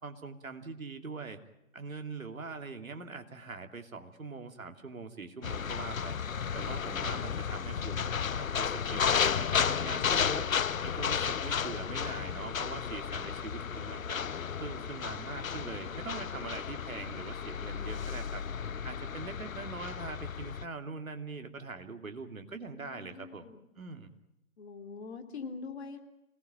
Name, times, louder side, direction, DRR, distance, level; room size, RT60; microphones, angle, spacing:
voice 1, 0.0-1.4 1.7-6.2 6.5-10.5 10.8-14.2 14.6-18.4 18.8-23.5 23.8-24.1, right 4 dB, 70° right, 6 dB, 2.9 m, -42 dB
sound 1, 5.4-20.7, left 7 dB, 65° left, 0.9 m, -33 dB
voice 2, 22.7-23.6 24.6-26.0, left 5 dB, 45° left, 5 dB, 3.6 m, -44 dB
27.0 x 19.0 x 9.2 m, 0.91 s
figure-of-eight pair, 135°, 43 cm